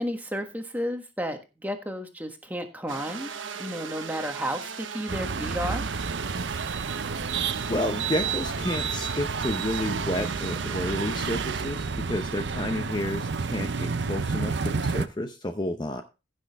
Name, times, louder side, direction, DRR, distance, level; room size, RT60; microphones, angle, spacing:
voice 1, 0.0-3.3 3.6-5.8, equal, 10° right, 5 dB, 1.4 m, -32 dB
sound 1, 2.9-11.6, right 6 dB, 80° right, 1.2 m, -38 dB
sound 2, 5.1-15.1, right 5 dB, 65° right, 0.6 m, -30 dB
voice 2, 7.7-16.0, left 1 dB, 25° left, 6 dB, 0.7 m, -31 dB
15.5 x 6.4 x 3.5 m, 0.28 s
head